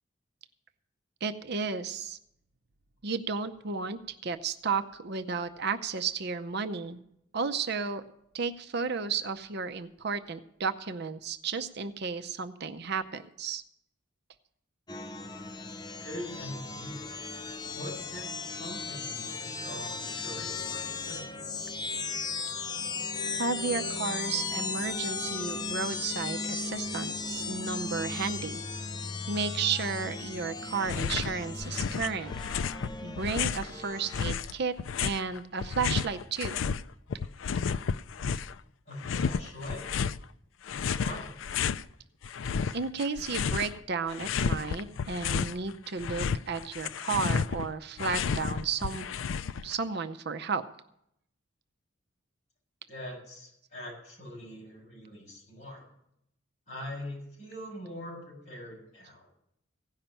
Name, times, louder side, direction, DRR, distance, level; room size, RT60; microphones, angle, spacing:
voice 1, 1.2-2.2 3.0-7.0 7.3-8.0 8.3-13.6 23.4-28.6 29.3-32.3 33.0-36.6 42.7-49.1 49.6-50.6, right 5 dB, 60° right, 9 dB, 0.7 m, -33 dB
sound 1, 14.9-34.3, left 4 dB, 20° left, 0.6 m, -36 dB
voice 2, 16.0-17.1 17.7-21.2 38.9-39.9 40.9-41.4 52.9-55.8 56.7-59.3, left 1 dB, 35° left, -4 dB, 7.1 m, -42 dB
sound 2, 30.8-31.3 31.6-33.7 34.1-36.8 37.1-38.6 39.0-40.2 40.7-41.8 42.2-43.8 44.1-45.6 45.9-49.8, left 6 dB, 80° left, 0.4 m, -32 dB
16.5 x 5.7 x 8.9 m, 0.77 s
head